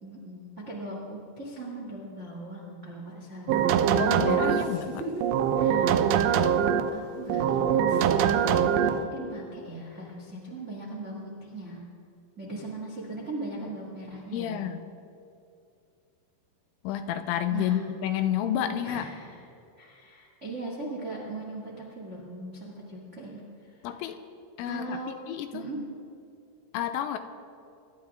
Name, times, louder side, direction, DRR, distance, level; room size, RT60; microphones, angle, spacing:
voice 1, 0.0-3.7 4.5-5.2 5.5-6.5 6.9-11.8 12.4-14.6 17.5-17.8 18.8-19.4 19.8-23.8 24.6-25.1 25.5-25.8, right 2 dB, 50° right, -3 dB, 0.8 m, -39 dB
sound 1, 3.5-4.7 5.2-6.9 7.3-9.0, right 8 dB, 85° right, 2.5 m, -23 dB
voice 2, 4.0-4.9 14.3-14.8 16.8-19.0 23.8-24.2 24.6-25.0 25.3-25.6 26.7-27.2, left 10 dB, 90° left, 9 dB, 3.3 m, -30 dB
24.5 x 12.0 x 3.7 m, 2.6 s
omnidirectional pair, 5.6 m